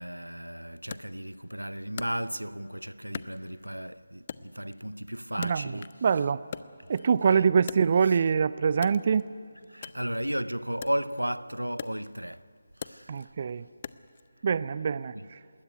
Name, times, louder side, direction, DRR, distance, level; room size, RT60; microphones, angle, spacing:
voice 1, 0.0-6.0 7.2-7.5 9.7-12.5 12.8-13.4 15.1-15.3, equal, 90° right, 0.6 m, -34 dB
Wood, 0.9-2.7 3.1-3.9 4.3-6.1 6.4-8.3 8.7-14.3, left 6 dB, 35° left, 0.5 m, -44 dB
voice 2, 5.4-5.7 6.0-6.4 6.9-9.3 13.1-13.7 14.4-15.4, right 6 dB, 35° right, 0.4 m, -24 dB
20.5 x 17.0 x 9.5 m
figure-of-eight pair, 155°, 0 cm